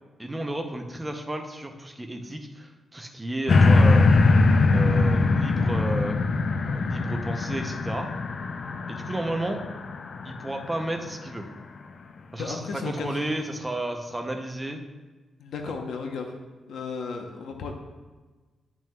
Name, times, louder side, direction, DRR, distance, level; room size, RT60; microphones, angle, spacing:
voice 1, 0.2-4.1 4.7-6.2 6.7-8.1 8.9-9.6 10.2-11.5 12.3-14.8 15.6-15.7, right 1 dB, 10° right, 3 dB, 0.6 m, -32 dB
sound 1, 3.5-10.9 11.4-11.5, left 3 dB, 45° left, 0.4 m, -22 dB
voice 2, 12.4-13.3 15.4-16.4 16.7-17.7, left 4 dB, 90° left, 3 dB, 0.8 m, -34 dB
10.5 x 6.1 x 2.3 m, 1.3 s
wide cardioid pair, 160°, 0 cm